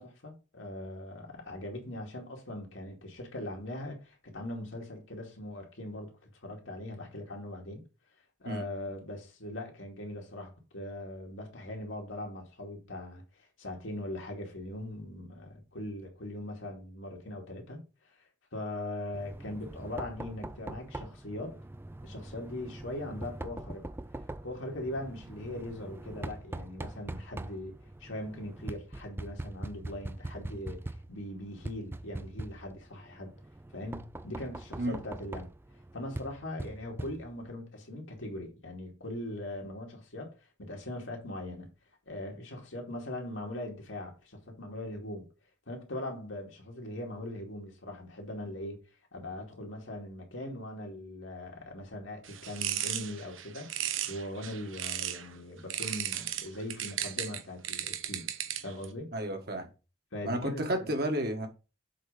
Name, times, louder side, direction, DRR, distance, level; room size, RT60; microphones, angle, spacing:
voice 1, 0.0-7.8 8.4-13.2 13.6-17.8 18.5-21.6 22.0-23.8 24.4-27.7 28.0-33.3 33.7-35.5 35.9-41.7 42.1-45.3 45.7-48.8 49.1-53.7 54.1-58.3 58.6-59.1 60.1-60.9, left 1 dB, 85° left, 2.4 m, -40 dB
Knock, 19.1-37.6, right 1 dB, 10° right, 0.4 m, -43 dB
sound 1, 52.2-55.3 55.7-58.9, right 11 dB, 85° right, 0.9 m, -35 dB
voice 2, 59.1-59.7 60.2-61.5, right 1 dB, 50° right, 1.7 m, -31 dB
7.6 x 4.0 x 5.1 m
head